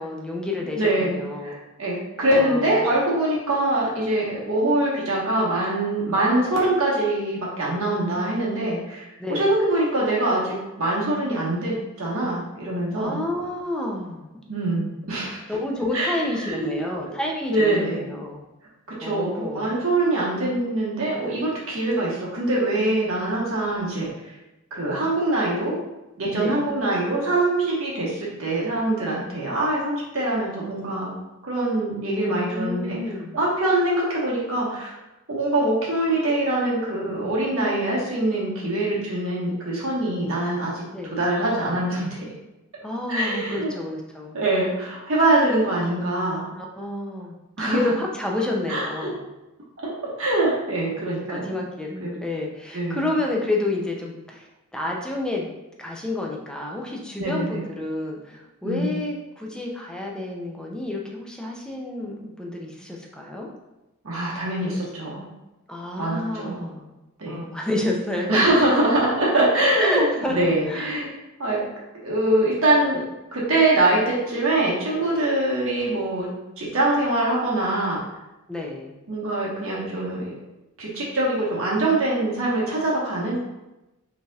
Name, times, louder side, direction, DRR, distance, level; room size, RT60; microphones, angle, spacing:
voice 1, 0.0-1.6 2.3-2.8 9.2-9.4 12.9-14.3 15.5-18.4 19.0-19.7 26.3-26.6 32.1-33.4 40.9-41.2 42.8-44.4 46.6-49.2 51.3-55.5 55.8-63.5 64.6-65.3 65.7-66.9 67.3-68.5 69.8-70.4 70.7-71.0 78.5-79.0, left 2 dB, 5° left, -1 dB, 0.5 m, -29 dB
voice 2, 0.7-13.2 14.5-15.4 15.9-16.8 17.5-18.0 18.9-24.1 24.7-25.8 26.2-31.1 31.4-33.0 33.3-34.9 35.3-40.8 41.1-42.3 43.1-43.7 44.3-46.5 47.6-47.9 48.7-49.1 49.8-49.9 50.2-51.5 52.0-52.1 52.7-53.1 57.2-57.6 58.6-59.0 64.0-65.3 66.0-66.7 67.2-67.4 68.3-71.1 71.4-71.7 72.0-73.0 73.3-76.3 76.6-78.0 79.1-80.3 80.8-83.4, right 1 dB, 65° right, -5 dB, 1.4 m, -23 dB
5.0 x 3.3 x 2.4 m, 0.98 s
head